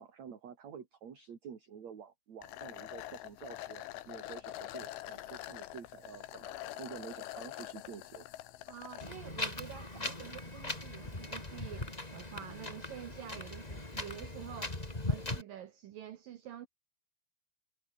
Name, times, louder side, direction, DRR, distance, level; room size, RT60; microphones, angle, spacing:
voice 1, 0.0-8.3 11.0-11.1, right 7 dB, 40° right, 3.5 m, -49 dB
sound 1, 2.4-9.1, left 15 dB, 80° left, 3.8 m, -45 dB
voice 2, 8.7-14.8 15.1-16.7, right 11 dB, 70° right, 2.1 m, -48 dB
Wind, 9.0-15.4, left 2 dB, 15° left, 1.6 m, -39 dB
omnidirectional pair, 5.5 m